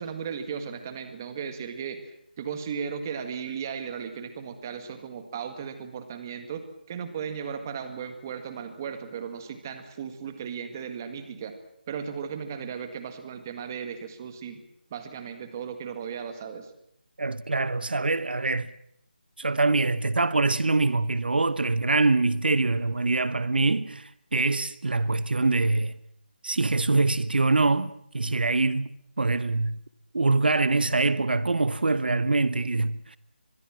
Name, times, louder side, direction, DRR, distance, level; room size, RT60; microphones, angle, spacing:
voice 1, 0.0-11.5 11.9-14.6 14.9-16.7, right 7 dB, 20° right, 1.8 m, -36 dB
voice 2, 17.2-18.7 19.4-26.0 26.4-28.9 29.2-29.8 30.1-33.2, right 3 dB, 70° right, 1.1 m, -24 dB
24.0 x 21.5 x 7.5 m
figure-of-eight pair, 175°, 5 cm